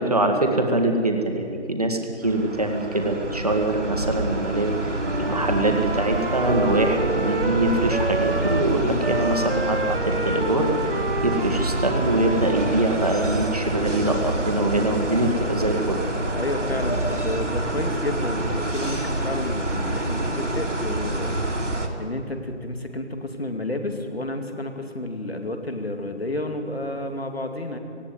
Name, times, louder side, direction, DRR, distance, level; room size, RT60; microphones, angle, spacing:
voice 1, 0.0-2.0 2.2-4.7 5.2-16.0, right 1 dB, 30° right, 4 dB, 1.8 m, -23 dB
sound 1, 2.2-21.9, right 1 dB, 85° right, 3.2 m, -27 dB
Wind instrument woodwind instrument, 5.0-8.7 9.0-12.8, right 2 dB, 50° right, 1.0 m, -30 dB
voice 2, 16.4-21.4 22.0-27.8, left 1 dB, 55° left, 6 dB, 2.5 m, -30 dB
18.0 x 16.5 x 9.4 m, 2.4 s
figure-of-eight pair, 175°, 36 cm